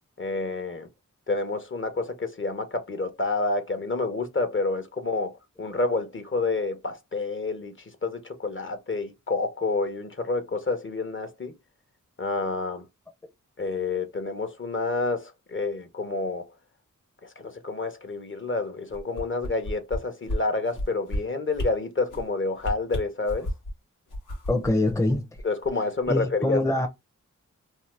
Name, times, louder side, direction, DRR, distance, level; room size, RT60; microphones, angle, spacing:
voice 1, 0.2-0.9 1.3-7.7 8.0-11.5 12.2-12.8 13.6-16.4 17.2-23.5 25.4-26.6, left 3 dB, 40° left, 0.9 m, -29 dB
sound 1, 18.9-20.0 20.3-20.4 20.7-21.2 21.5-21.7 22.1-22.3 22.6-23.7 24.1-25.7 26.0-26.1, left 1 dB, 70° left, 1.1 m, -31 dB
voice 2, 24.5-25.2 26.1-26.9, left 2 dB, 10° left, 0.6 m, -24 dB
2.7 x 2.1 x 3.3 m
cardioid pair, 45°, 32 cm